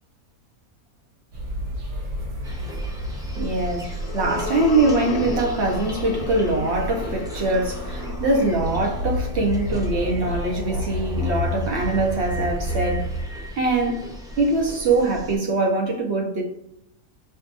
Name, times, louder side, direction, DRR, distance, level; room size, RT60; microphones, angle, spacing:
sound 1, 1.3-13.2, left 1 dB, 80° right, 1.5 m, -31 dB
sound 2, 2.4-15.4, left 1 dB, 5° right, 0.4 m, -37 dB
voice 1, 3.4-13.1 13.6-14.0 14.4-16.4, right 2 dB, 50° right, 1.2 m, -23 dB
sound 3, 3.5-10.0, left 6 dB, 80° left, 1.0 m, -35 dB
5.2 x 2.6 x 2.6 m
omnidirectional pair, 1.5 m